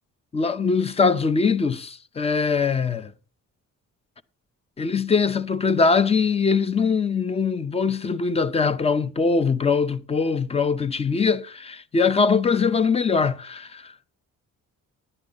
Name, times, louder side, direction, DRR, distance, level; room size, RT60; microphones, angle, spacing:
voice 1, 0.3-3.1 4.8-14.1, left 5 dB, 20° left, 0.6 m, -22 dB
11.5 x 9.9 x 3.8 m
cardioid pair, 165°, 32 cm